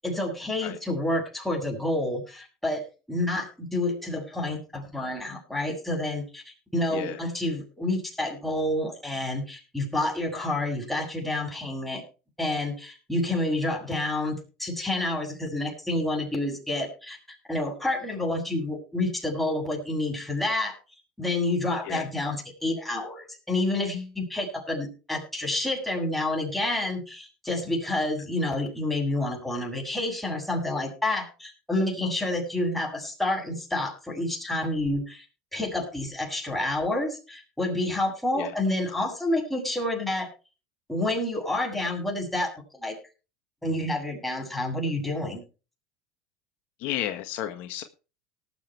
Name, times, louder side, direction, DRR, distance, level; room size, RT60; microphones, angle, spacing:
voice 1, 0.0-2.8 3.1-12.0 12.4-17.2 17.5-20.7 21.2-35.2 35.5-40.3 40.9-43.0 43.6-45.4, left 1 dB, 5° left, 1 dB, 7.8 m, -29 dB
voice 2, 46.8-47.8, left 12 dB, 65° left, 7 dB, 1.5 m, -32 dB
19.0 x 7.5 x 4.6 m, 0.34 s
supercardioid pair, 100°, 3 cm